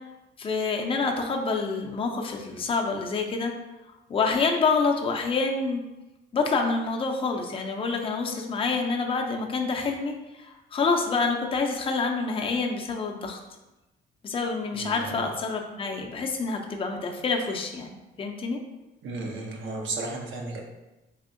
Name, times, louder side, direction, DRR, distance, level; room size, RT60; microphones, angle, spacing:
voice 1, 0.4-3.5 4.1-5.8 6.3-13.4 14.2-18.6, left 4 dB, 25° left, 2 dB, 0.4 m, -27 dB
voice 2, 14.7-15.2 19.0-20.6, right 3 dB, 75° right, 1 dB, 0.7 m, -34 dB
3.5 x 2.6 x 2.5 m, 1.0 s
cardioid pair, 90°, 20 cm